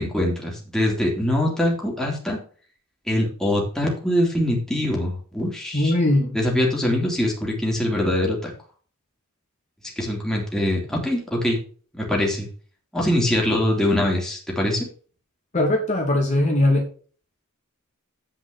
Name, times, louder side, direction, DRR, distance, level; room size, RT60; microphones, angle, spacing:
voice 1, 0.0-2.4 3.1-5.9 6.3-8.5 10.0-11.6 12.0-12.5 12.9-14.8, left 1 dB, 5° left, -2 dB, 2.9 m, -23 dB
voice 2, 5.7-6.4 15.5-16.9, left 1 dB, 35° left, -1 dB, 2.2 m, -20 dB
8.8 x 5.4 x 6.6 m, 0.41 s
head